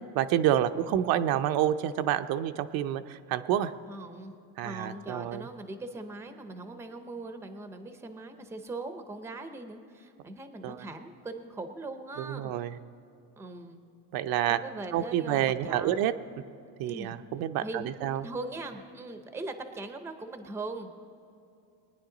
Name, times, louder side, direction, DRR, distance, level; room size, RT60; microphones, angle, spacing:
voice 1, 0.1-3.7 4.6-5.5 10.6-10.9 12.2-12.8 14.1-14.6 14.9-16.1 16.8-18.3, right 11 dB, 70° right, 9 dB, 0.6 m, -28 dB
voice 2, 3.9-4.3 4.6-12.5 13.4-13.8 14.5-15.9 16.9-17.2 17.6-20.9, right 2 dB, 5° right, 7 dB, 0.6 m, -40 dB
21.5 x 9.8 x 3.9 m, 2.6 s
cardioid pair, 165°, 37 cm